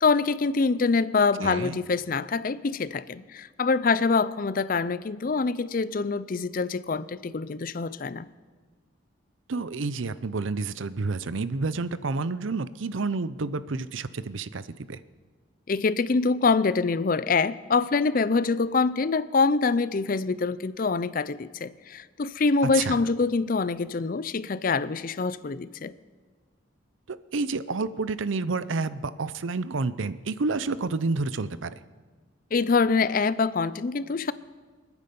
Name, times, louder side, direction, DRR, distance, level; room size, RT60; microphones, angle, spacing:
voice 1, 0.0-8.3 15.7-25.9 32.5-34.3, left 4 dB, 45° left, 16 dB, 0.5 m, -25 dB
voice 2, 1.4-1.8 9.5-15.0 22.6-23.0 27.1-31.7, right 3 dB, 75° right, 15 dB, 0.6 m, -29 dB
27.5 x 9.6 x 5.3 m, 1.4 s
head